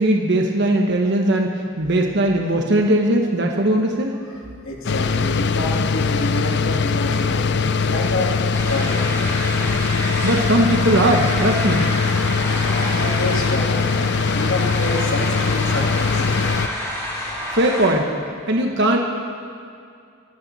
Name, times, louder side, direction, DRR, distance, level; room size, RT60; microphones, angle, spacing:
voice 1, 0.0-1.5 1.8-4.1 10.2-11.9 17.5-18.1 18.5-19.0, right 1 dB, 55° right, 2 dB, 1.1 m, -19 dB
voice 2, 4.6-7.4 7.8-8.4 8.7-9.1 12.6-13.9 14.3-16.2, left 2 dB, 80° left, -1 dB, 2.4 m, -27 dB
sound 1, 4.8-16.7, left 5 dB, 55° left, 0.5 m, -21 dB
sound 2, 8.5-17.9, equal, 15° left, 3.0 m, -29 dB
24.5 x 12.5 x 4.1 m, 2.3 s
head